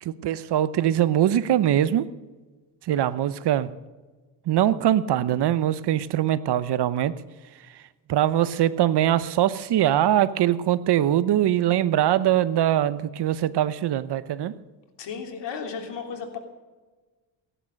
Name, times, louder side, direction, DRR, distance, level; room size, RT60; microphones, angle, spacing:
voice 1, 0.0-2.1 2.8-3.7 4.5-7.1 7.7-7.8 8.1-14.5, right 11 dB, 60° right, 16 dB, 0.9 m, -22 dB
voice 2, 15.0-16.4, left 6 dB, 70° left, 3 dB, 3.3 m, -34 dB
17.0 x 11.0 x 6.5 m, 1.3 s
cardioid pair, 90°, 44 cm